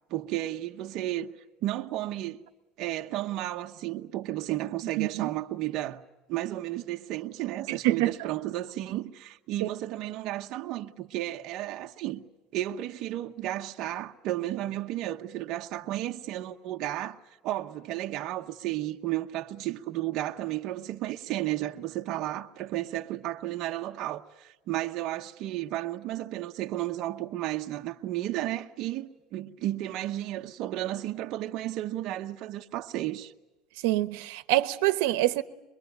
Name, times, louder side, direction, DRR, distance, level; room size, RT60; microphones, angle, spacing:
voice 1, 0.1-1.4 1.6-2.4 2.8-6.0 6.3-12.2 12.5-17.2 17.4-33.3, right 14 dB, 45° right, 0.9 m, -33 dB
voice 2, 5.0-5.3 7.7-8.1 9.6-9.7 33.8-35.4, right 16 dB, 85° right, 1.1 m, -25 dB
24.5 x 23.0 x 9.2 m
cardioid pair, 175°, 0 cm